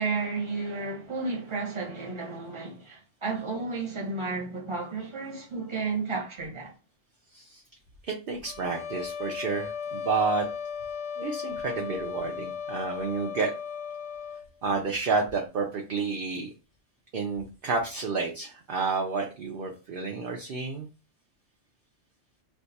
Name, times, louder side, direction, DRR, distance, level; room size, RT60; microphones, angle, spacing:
voice 1, 0.0-6.7, right 4 dB, 25° right, 1.0 m, -32 dB
voice 2, 8.0-10.5 11.2-13.5 14.6-16.5 17.1-20.9, right 4 dB, 55° right, 0.6 m, -30 dB
sound 1, 8.4-14.5, left 7 dB, 85° left, 1.0 m, -36 dB
2.5 x 2.4 x 4.0 m
omnidirectional pair, 1.3 m